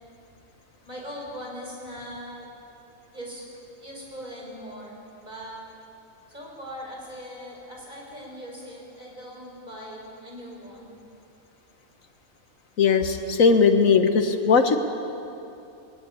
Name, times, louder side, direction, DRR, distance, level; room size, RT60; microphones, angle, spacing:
voice 1, 0.8-2.5 3.1-3.4 3.8-5.6 6.3-10.9, equal, 35° right, -2 dB, 6.0 m, -40 dB
voice 2, 12.8-14.8, left 5 dB, 80° left, 7 dB, 1.7 m, -19 dB
20.0 x 19.0 x 9.8 m, 2.7 s
omnidirectional pair, 1.4 m